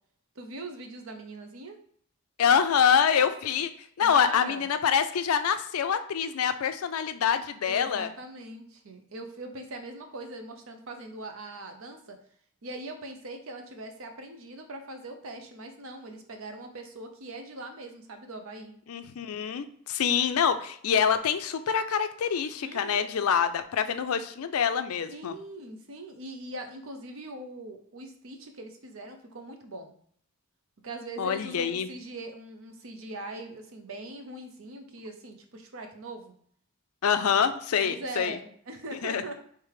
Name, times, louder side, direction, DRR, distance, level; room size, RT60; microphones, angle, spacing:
voice 1, 0.4-1.8 4.0-4.7 7.6-12.2 12.6-18.7 22.6-23.1 25.1-29.9 30.8-36.3 37.8-39.3, right 2 dB, 65° right, 5 dB, 0.7 m, -41 dB
voice 2, 2.4-3.7 4.0-8.1 18.9-25.3 31.2-31.9 37.0-38.4 39.0-39.3, left 7 dB, 85° left, 10 dB, 0.4 m, -26 dB
3.3 x 3.3 x 4.7 m, 0.62 s
head